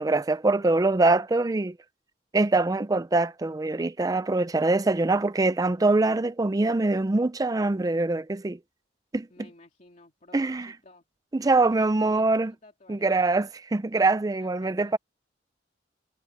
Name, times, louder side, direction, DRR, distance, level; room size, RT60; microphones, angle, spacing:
voice 1, 0.0-1.8 2.3-8.6 9.1-9.3 10.3-10.7 11.3-12.5 12.9-15.0, right 2 dB, 20° right, 0.4 m, -23 dB
voice 2, 9.3-11.0 11.6-13.3 14.3-15.0, left 2 dB, 45° left, 2.6 m, -53 dB
head